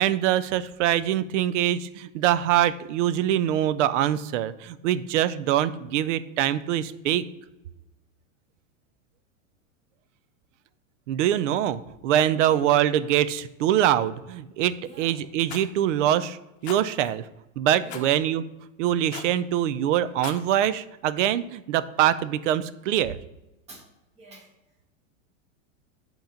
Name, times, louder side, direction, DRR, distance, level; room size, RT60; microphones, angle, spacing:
voice 1, 0.0-7.2 11.1-17.3 17.6-18.4 18.8-23.2, right 11 dB, 65° right, 15 dB, 0.5 m, -24 dB
voice 2, 14.8-15.1 17.8-18.1 23.7-23.8 24.2-24.5, right 1 dB, 15° right, -1 dB, 1.2 m, -43 dB
Rattle, 15.5-15.7 16.6-16.8 17.9-18.1 19.1-19.4 20.1-20.4, left 8 dB, 50° left, 0.7 m, -38 dB
7.9 x 3.0 x 5.1 m, 0.95 s
supercardioid pair, 165°, 40 cm